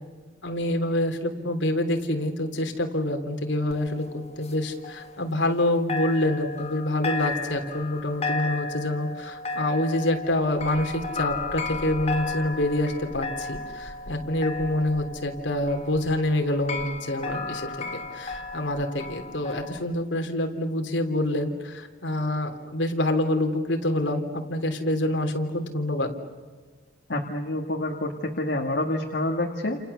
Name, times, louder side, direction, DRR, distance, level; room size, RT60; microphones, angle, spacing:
voice 1, 0.4-26.1, left 1 dB, 90° left, 5 dB, 3.2 m, -26 dB
sound 1, 3.7-5.6 5.9-19.8, left 3 dB, 35° left, 2.1 m, -34 dB
voice 2, 27.1-29.8, left 1 dB, 75° left, 1 dB, 2.0 m, -28 dB
29.5 x 28.5 x 7.0 m, 1.5 s
head